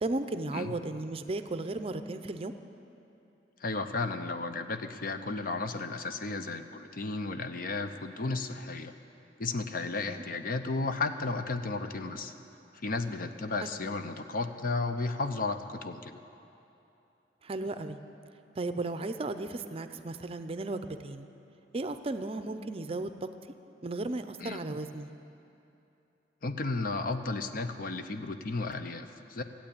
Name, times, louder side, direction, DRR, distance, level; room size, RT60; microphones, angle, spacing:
voice 1, 0.0-2.6 9.9-10.2 13.6-13.7 17.4-18.0 18.6-21.3 21.7-23.3 23.8-25.1, right 2 dB, 35° right, 9 dB, 0.5 m, -35 dB
voice 2, 3.6-8.9 9.4-12.3 12.7-16.2 24.4-24.6 26.4-29.4, left 3 dB, 55° left, 8 dB, 0.7 m, -33 dB
14.5 x 8.7 x 8.7 m, 2.8 s
head